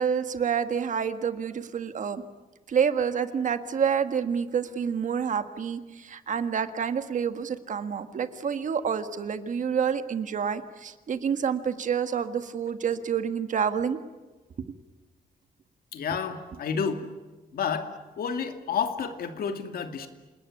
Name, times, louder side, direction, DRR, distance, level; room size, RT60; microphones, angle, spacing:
voice 1, 0.0-2.2 2.7-14.0 14.6-14.7, right 7 dB, 55° right, 10 dB, 1.6 m, -28 dB
voice 2, 15.9-17.1 17.5-20.1, left 6 dB, 80° left, 7 dB, 2.4 m, -30 dB
28.5 x 19.5 x 10.0 m, 1.2 s
wide cardioid pair, 150°, 15 cm